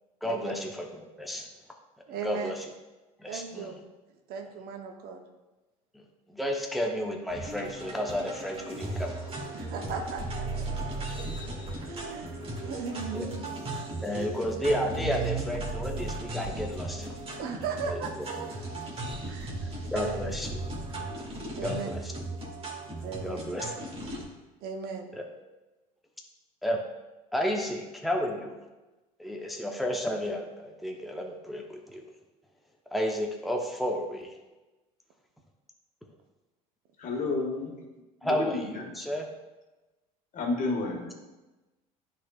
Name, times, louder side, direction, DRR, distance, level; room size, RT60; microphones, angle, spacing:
voice 1, 0.2-1.5 2.2-2.7 3.2-3.7 5.9-9.2 13.1-13.3 14.0-17.1 17.8-18.2 19.3-19.4 19.9-20.6 21.6-22.1 23.2-23.6 25.1-25.2 26.6-26.8 27.3-28.6 29.2-32.1 32.9-34.3 38.2-39.3, equal, ahead, 0 dB, 0.9 m, -32 dB
voice 2, 2.1-2.5 3.3-3.8 4.3-5.2 9.5-10.4 11.2-11.3 11.9-12.3 12.6-13.5 14.1-14.3 15.0-15.1 17.4-18.5 19.3-19.5 19.9-20.2 20.9-21.0 21.5-21.9 23.0-23.5 24.6-25.1, right 6 dB, 55° right, 4 dB, 0.9 m, -37 dB
sound 1, 7.3-24.2, right 2 dB, 30° right, 1.9 m, -36 dB
voice 3, 37.0-37.8 38.2-38.9 40.3-41.1, left 3 dB, 45° left, 1 dB, 1.7 m, -31 dB
10.0 x 4.2 x 2.4 m, 1.1 s
hypercardioid pair, 75°, 19 cm